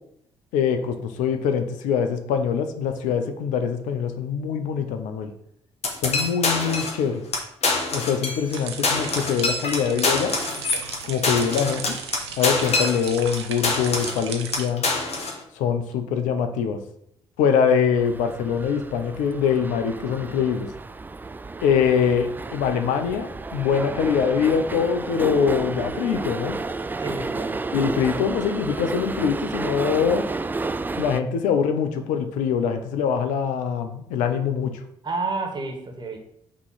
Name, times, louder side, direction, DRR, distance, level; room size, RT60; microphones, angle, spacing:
voice 1, 0.5-5.3 6.0-7.2 7.9-10.3 11.0-11.8 12.4-14.8 15.6-16.8 17.4-20.7 21.6-26.6 27.7-30.2 31.0-34.8, left 7 dB, 65° left, 7 dB, 0.7 m, -23 dB
sound 1, 5.8-7.0 7.3-7.4 7.6-8.6 8.8-13.4 13.6-14.2 14.5-15.4, left 3 dB, 50° left, 1.5 m, -25 dB
sound 2, 8.5-14.7, right 6 dB, 85° right, 0.6 m, -36 dB
sound 3, 18.0-31.2, right 3 dB, 15° right, 0.3 m, -31 dB
voice 2, 27.0-27.5 35.0-36.2, right 3 dB, 35° right, 4 dB, 1.5 m, -30 dB
6.0 x 3.2 x 5.6 m, 0.72 s
figure-of-eight pair, 45°, 14 cm